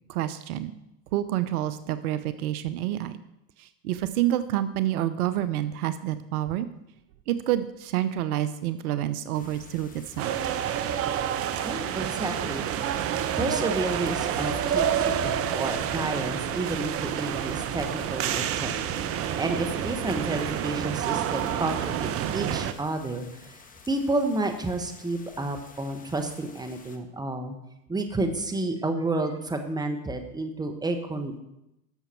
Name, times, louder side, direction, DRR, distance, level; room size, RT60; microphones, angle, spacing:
voice 1, 0.1-0.7 1.1-3.1 3.6-6.7 7.3-10.3, right 12 dB, 70° right, 13 dB, 0.8 m, -28 dB
sound 1, 9.3-27.0, left 4 dB, 15° left, 1.2 m, -47 dB
sound 2, 10.2-22.7, right 9 dB, 30° right, 0.7 m, -28 dB
voice 2, 11.6-12.6 13.3-19.1 19.4-23.6 23.9-27.5 27.9-31.5, right 2 dB, 10° right, 5 dB, 1.2 m, -30 dB
11.5 x 6.9 x 4.5 m, 0.87 s
hypercardioid pair, 100°, 46 cm